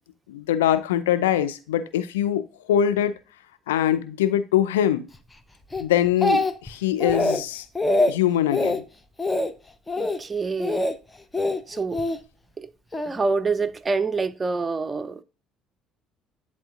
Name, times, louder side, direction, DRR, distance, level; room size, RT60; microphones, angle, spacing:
voice 1, 0.3-3.1 3.7-5.0 5.8-7.7 8.1-8.8, left 11 dB, 80° left, 0.5 m, -23 dB
Speech, 5.7-6.7 7.0-7.4 7.7-8.1 8.5-8.8 9.2-9.5 9.9-10.2 10.6-10.9 11.3-12.2 12.9-13.2, left 2 dB, 15° left, 0.8 m, -23 dB
voice 2, 10.0-10.9 11.7-12.0 12.6-12.7 13.0-15.2, right 4 dB, 25° right, 0.6 m, -26 dB
10.5 x 3.6 x 2.5 m
hypercardioid pair, 55°, 0 cm